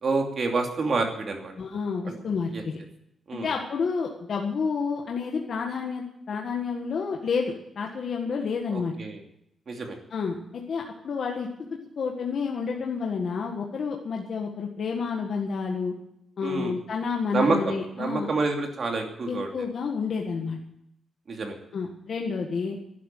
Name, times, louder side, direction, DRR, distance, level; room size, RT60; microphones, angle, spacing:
voice 1, 0.0-1.5 2.0-2.2 2.5-2.6 3.3-3.5 8.7-9.2 9.7-10.0 16.4-16.7 17.3-19.5 21.3-21.6, right 3 dB, 40° right, 3 dB, 2.7 m, -28 dB
voice 2, 1.6-2.8 3.3-8.9 10.1-11.5 12.0-15.9 16.4-18.3 19.3-20.6 21.7-22.8, left 5 dB, 50° left, 1 dB, 1.7 m, -30 dB
12.0 x 11.5 x 9.2 m, 0.77 s
wide cardioid pair, 160°, 0 cm